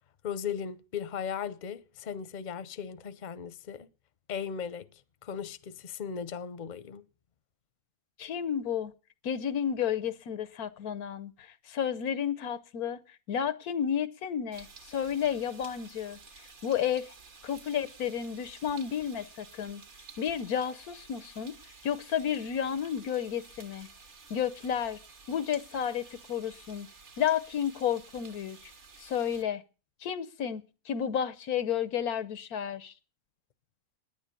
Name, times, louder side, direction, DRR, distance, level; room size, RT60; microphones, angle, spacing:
voice 1, 0.2-3.9 4.3-4.9 5.2-7.0, left 7 dB, 40° left, 0.7 m, -37 dB
voice 2, 8.2-8.9 9.2-17.1 17.4-19.8 20.2-21.5 21.8-23.9 24.3-25.0 25.3-26.9 27.2-28.7 29.0-29.6 30.0-32.9, left 8 dB, 85° left, 1.3 m, -32 dB
sound 1, 14.5-29.4, right 4 dB, 50° right, 1.7 m, -52 dB
9.8 x 9.6 x 8.3 m
omnidirectional pair, 1.5 m